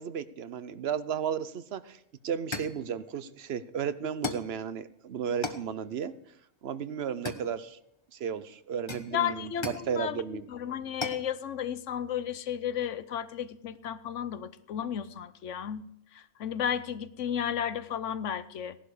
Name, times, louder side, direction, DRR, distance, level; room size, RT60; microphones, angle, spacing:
voice 1, 0.0-2.0 2.2-6.1 6.6-7.8 8.1-10.5, right 7 dB, 60° right, 14 dB, 0.9 m, -34 dB
sound 1, 1.8-2.0 2.5-2.9 4.2-4.6 5.4-5.7 7.2-7.9 8.9-9.9 11.0-11.3, left 3 dB, 25° left, 1.1 m, -37 dB
voice 2, 9.1-15.8 16.1-18.8, left 9 dB, 80° left, 14 dB, 1.1 m, -33 dB
17.5 x 11.5 x 4.9 m, 0.75 s
omnidirectional pair, 1.3 m